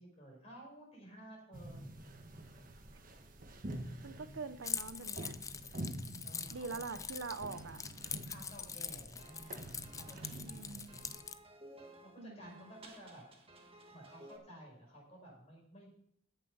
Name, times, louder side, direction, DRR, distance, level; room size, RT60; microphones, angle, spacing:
voice 1, 0.0-1.8 6.2-7.1 8.2-9.5 10.0-11.1 12.0-13.2 13.9-15.9, right 1 dB, 35° left, -2 dB, 5.5 m, -54 dB
sound 1, 1.5-11.2, right 1 dB, 45° right, 1.4 m, -48 dB
voice 2, 4.0-5.4 6.5-7.8 10.3-10.9 12.2-12.7, right 4 dB, 80° right, 12 dB, 0.7 m, -44 dB
Keys jangling, 4.6-11.4, left 7 dB, 15° left, 0.4 m, -43 dB
sound 2, 9.2-14.4, right 1 dB, 30° right, 1.5 m, -57 dB
14.0 x 6.7 x 5.5 m, 0.70 s
head